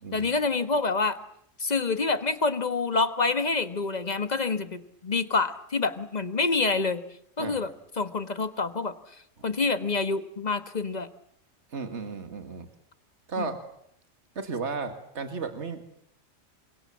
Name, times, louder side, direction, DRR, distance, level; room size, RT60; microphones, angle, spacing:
voice 1, 0.1-1.2 1.6-7.0 7.4-7.7 8.0-8.9 9.4-11.1 13.4-13.5, left 3 dB, 35° left, 10 dB, 1.5 m, -27 dB
voice 2, 7.4-7.7 9.4-9.5 11.7-12.7 13.3-13.6 14.4-15.8, right 4 dB, 60° right, 7 dB, 2.2 m, -34 dB
29.5 x 26.0 x 7.4 m, 0.72 s
omnidirectional pair, 1.3 m